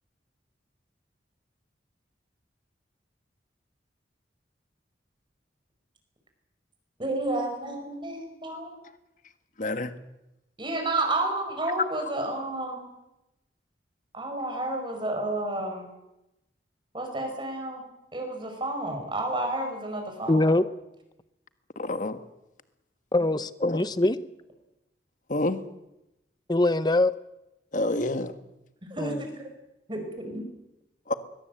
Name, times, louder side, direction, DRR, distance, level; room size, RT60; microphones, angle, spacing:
voice 1, 7.0-8.8 10.6-12.9 14.1-15.9 16.9-20.6 28.8-29.5 29.9-30.4, right 2 dB, 25° right, 4.8 m, -31 dB
voice 2, 9.6-9.9 21.7-22.2 23.6-23.8 25.3-25.6 27.7-28.3 31.1-31.2, left 2 dB, 45° left, 1.4 m, -28 dB
voice 3, 20.3-20.7 23.1-24.2 26.5-27.1 29.0-29.2, left 2 dB, 25° left, 0.9 m, -23 dB
21.5 x 21.0 x 8.0 m
head